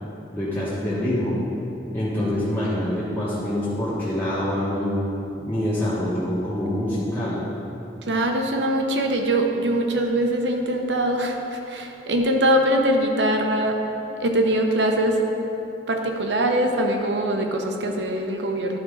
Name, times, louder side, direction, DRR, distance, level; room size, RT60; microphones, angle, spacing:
voice 1, 0.3-1.3 1.9-7.4, left 1 dB, 10° left, -10 dB, 1.1 m, -25 dB
voice 2, 8.0-13.8 14.2-15.2 15.9-18.8, right 1 dB, 80° right, 3 dB, 0.9 m, -22 dB
11.5 x 4.4 x 5.1 m, 3.0 s
head